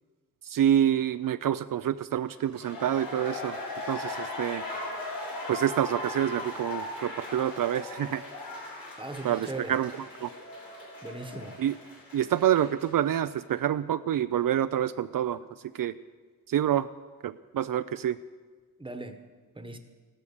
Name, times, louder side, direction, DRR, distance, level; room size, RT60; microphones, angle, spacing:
voice 1, 0.5-3.6 3.9-4.6 5.5-8.2 9.2-9.9 10.2-10.3 11.6-11.7 12.1-15.4 15.8-15.9 16.5-16.9 17.2-18.2, right 10 dB, 70° right, 12 dB, 0.5 m, -27 dB
sound 1, 2.4-13.2 13.5-13.6, left 2 dB, 90° left, 6.6 m, -38 dB
voice 2, 9.0-9.8 11.0-11.6 18.8-19.2 19.5-19.8, right 2 dB, 15° right, 8 dB, 1.2 m, -39 dB
16.0 x 12.5 x 6.7 m, 1.4 s
wide cardioid pair, 135°, 35 cm